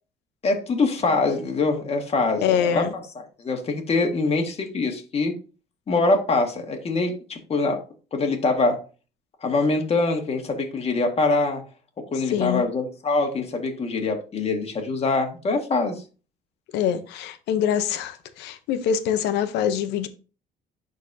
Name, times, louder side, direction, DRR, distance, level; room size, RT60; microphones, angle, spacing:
voice 1, 0.4-2.8 3.4-5.3 5.9-7.8 8.1-8.8 9.4-11.6 12.1-15.9, left 3 dB, 35° left, 1.7 m, -24 dB
voice 2, 2.4-2.9 12.3-12.6 16.7-20.1, left 8 dB, 90° left, 0.9 m, -24 dB
11.5 x 4.1 x 2.7 m
cardioid pair, 110°, 17 cm